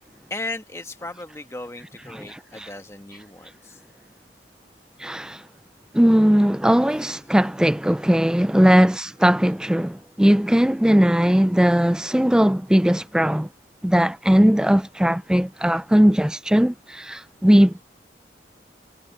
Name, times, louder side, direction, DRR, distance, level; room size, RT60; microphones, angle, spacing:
voice 1, 0.3-3.8, left 2 dB, 15° left, 1.4 m, -36 dB
voice 2, 2.1-2.7 5.0-5.4 5.9-13.5 13.8-17.8, equal, 5° right, 0.3 m, -19 dB
head